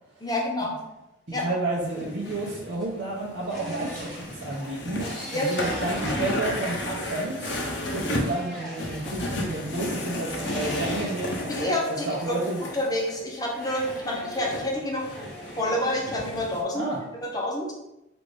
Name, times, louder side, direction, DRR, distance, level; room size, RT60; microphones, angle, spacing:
voice 1, 0.2-0.7 1.3-1.4 5.3-5.5 11.5-12.4 12.7-15.0 15.6-16.9 17.2-17.7, left 1 dB, 20° left, -3 dB, 0.7 m, -28 dB
voice 2, 1.3-7.5 7.9-11.4 12.0-12.7 16.7-17.0, right 2 dB, 65° right, -8 dB, 0.8 m, -31 dB
sound 1, 1.8-16.6, left 1 dB, 65° left, 0.7 m, -33 dB
sound 2, 2.7-7.6 8.1-9.9 10.4-13.1 13.5-17.2, equal, 5° left, 1.2 m, -42 dB
4.9 x 2.6 x 3.4 m, 0.91 s
head